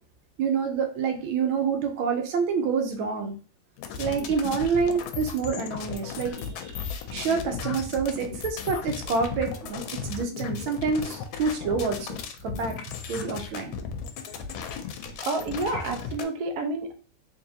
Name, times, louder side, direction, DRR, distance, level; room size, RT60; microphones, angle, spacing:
voice 1, 0.4-3.3 4.0-12.2 12.4-12.8 13.1-13.8, right 5 dB, 85° right, 4 dB, 1.5 m, -27 dB
sound 1, 3.8-16.2, left 6 dB, 90° left, 1.4 m, -35 dB
voice 2, 15.2-16.9, right 2 dB, 65° right, 4 dB, 1.0 m, -29 dB
3.7 x 3.2 x 2.7 m, 0.38 s
omnidirectional pair, 2.1 m